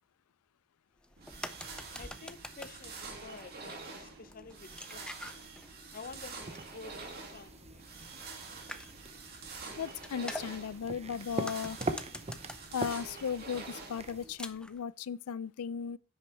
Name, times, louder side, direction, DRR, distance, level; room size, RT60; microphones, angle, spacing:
sound 1, 1.0-14.8, left 1 dB, 5° left, 0.6 m, -49 dB
sound 2, 1.2-14.3, right 4 dB, 45° right, 2.7 m, -47 dB
voice 1, 2.0-3.8 4.2-5.1 5.9-6.4 6.7-7.9, left 4 dB, 40° left, 0.7 m, -49 dB
sound 3, 6.1-14.3, right 2 dB, 30° right, 0.7 m, -43 dB
voice 2, 9.8-11.8 12.7-16.0, left 7 dB, 85° left, 0.4 m, -36 dB
10.5 x 8.6 x 3.5 m
head